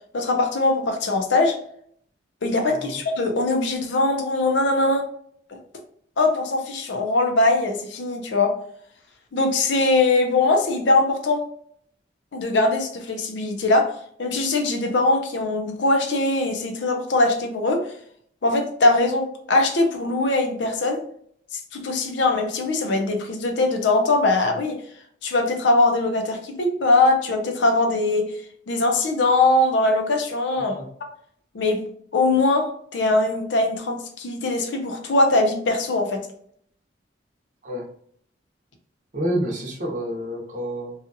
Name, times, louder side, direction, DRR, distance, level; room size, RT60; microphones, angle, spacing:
voice 1, 0.1-1.5 2.4-5.1 6.2-8.5 9.3-11.4 12.3-13.9 14.2-17.9 18.4-21.0 21.7-24.8 25.2-28.3 28.7-30.8 31.5-31.8 32.1-36.3, left 2 dB, 70° left, 4 dB, 0.5 m, -21 dB
voice 2, 2.7-3.0 30.6-30.9 37.6-37.8 39.1-40.9, equal, 40° right, -1 dB, 0.7 m, -29 dB
2.7 x 2.4 x 2.5 m, 0.63 s
head